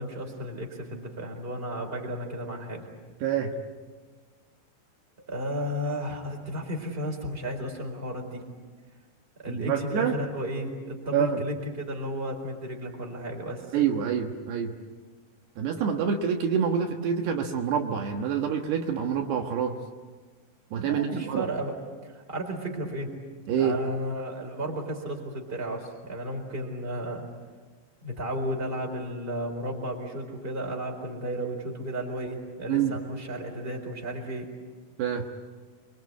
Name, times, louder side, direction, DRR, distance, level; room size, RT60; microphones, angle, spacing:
voice 1, 0.0-2.9 5.2-8.4 9.4-13.7 20.7-23.1 23.5-27.3 28.0-34.5, equal, 15° right, 1 dB, 4.1 m, -33 dB
voice 2, 3.2-3.5 9.5-10.1 11.1-11.4 13.7-14.7 15.6-19.8 20.7-21.5 23.5-23.8 32.7-33.0 35.0-35.2, right 7 dB, 75° right, 2 dB, 3.5 m, -27 dB
28.0 x 23.5 x 8.4 m, 1.4 s
omnidirectional pair, 5.0 m